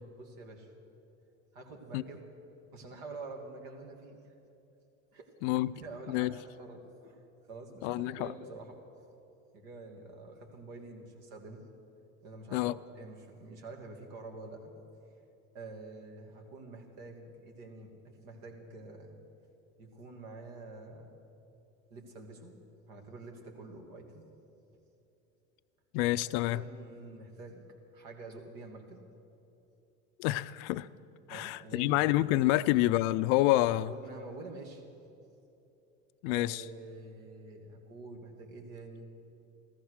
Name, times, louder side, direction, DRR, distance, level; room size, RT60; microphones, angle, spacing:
voice 1, 0.2-0.7 1.5-2.2 2.7-4.2 5.1-5.3 5.7-7.2 7.5-8.8 9.5-11.6 12.2-14.7 15.5-19.2 19.8-21.2 21.9-22.6 22.9-24.2 26.4-27.6 27.9-29.0 31.3-32.2 32.5-32.8 33.7-34.8 36.3-39.1, right 3 dB, 70° right, 2.5 m, -47 dB
voice 2, 5.4-5.7 6.1-6.3 7.8-8.3 12.5-12.8 25.9-26.6 30.2-30.9 31.3-33.9 36.2-36.6, left 16 dB, 60° left, 0.5 m, -28 dB
14.5 x 14.0 x 6.4 m
hypercardioid pair, 90°, 39 cm